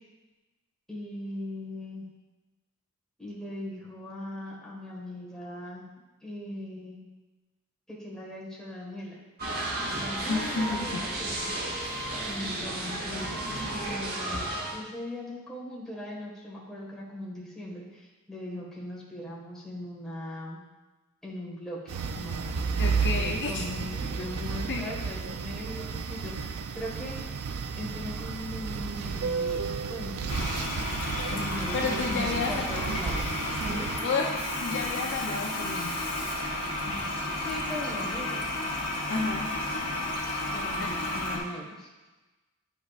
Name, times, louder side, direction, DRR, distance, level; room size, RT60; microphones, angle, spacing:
voice 1, 0.9-2.0 3.2-5.8 6.2-7.0 7.9-9.2 9.9-11.5 12.3-13.3 13.6-20.6 21.2-27.1 27.7-30.8 31.3-33.3 33.6-33.9 37.4-38.5 40.5-41.9, left 1 dB, ahead, -5 dB, 1.5 m, -39 dB
sound 1, 9.4-14.8, right 1 dB, 45° right, 1.0 m, -33 dB
voice 2, 10.3-11.1 22.8-23.6 24.7-24.9 31.7-32.9 34.0-36.0 39.1-39.6, left 4 dB, 55° left, 1 dB, 0.5 m, -31 dB
sound 2, 21.9-34.0, right 5 dB, 70° right, 0.4 m, -32 dB
Toilet flush, 30.3-41.4, left 1 dB, 80° left, 1.5 m, -32 dB
9.3 x 5.3 x 2.4 m, 1.1 s
head